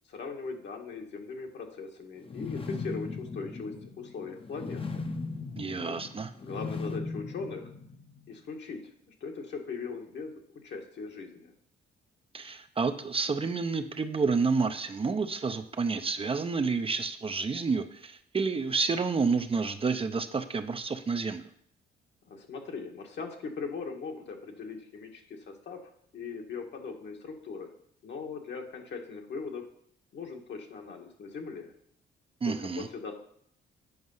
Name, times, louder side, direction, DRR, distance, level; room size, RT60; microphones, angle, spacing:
voice 1, 0.1-5.0 5.8-5.9 6.4-7.7 8.3-8.8 9.1-11.5 22.3-25.8 26.1-27.7 28.0-29.6 30.1-31.7 32.4-33.1, left 4 dB, 60° left, 2 dB, 1.6 m, -39 dB
sound 1, 2.2-8.3, left 3 dB, 25° left, 0.8 m, -38 dB
voice 2, 5.6-6.3 12.3-21.4 32.4-32.9, right 4 dB, 30° right, 7 dB, 0.6 m, -29 dB
8.0 x 5.2 x 5.5 m, 0.67 s
cardioid pair, 90°, 20 cm